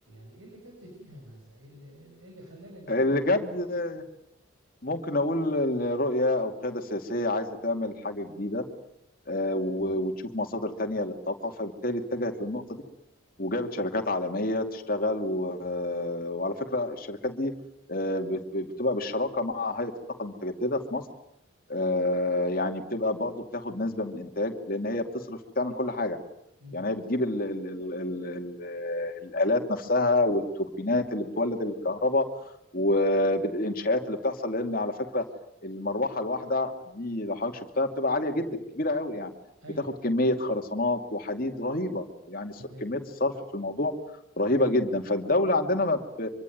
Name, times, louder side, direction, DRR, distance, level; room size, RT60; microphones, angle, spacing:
voice 1, 0.0-3.2 26.6-26.9 39.6-40.0 42.6-42.9, equal, 80° right, 1 dB, 7.1 m, -47 dB
voice 2, 2.9-4.0 4.8-8.7 9.3-12.8 13.4-17.5 17.9-19.9 20.2-21.0 21.7-26.2 26.7-32.3 32.7-35.2 35.6-38.5 38.8-39.3 40.0-43.9 44.4-46.3, left 2 dB, 45° left, 4 dB, 2.6 m, -28 dB
25.5 x 24.5 x 9.3 m, 0.80 s
head